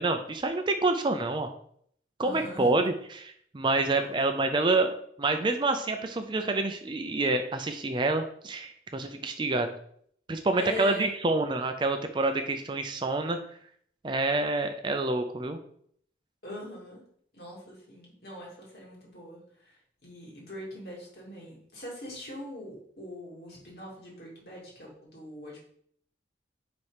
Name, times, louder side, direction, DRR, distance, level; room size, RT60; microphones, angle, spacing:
voice 1, 0.0-1.5 2.2-9.7 10.3-13.4 14.0-15.6, right 2 dB, 25° right, 6 dB, 0.4 m, -27 dB
voice 2, 2.2-2.7 4.0-4.1 10.6-11.1 16.4-17.0 17.3-25.6, left 1 dB, 55° left, -3 dB, 2.1 m, -42 dB
4.8 x 4.2 x 4.8 m, 0.64 s
head